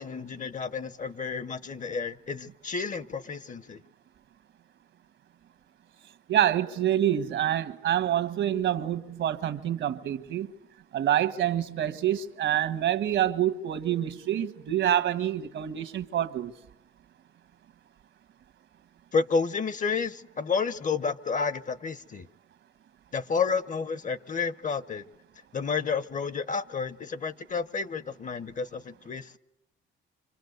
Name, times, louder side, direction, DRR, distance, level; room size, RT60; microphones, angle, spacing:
voice 1, 0.0-3.8 19.1-22.3 23.1-25.0 25.5-29.3, left 5 dB, 40° left, 1.0 m, -30 dB
voice 2, 6.3-10.5 10.9-16.5, right 11 dB, 70° right, 1.4 m, -27 dB
26.0 x 25.5 x 8.0 m
cardioid pair, 90°, 20 cm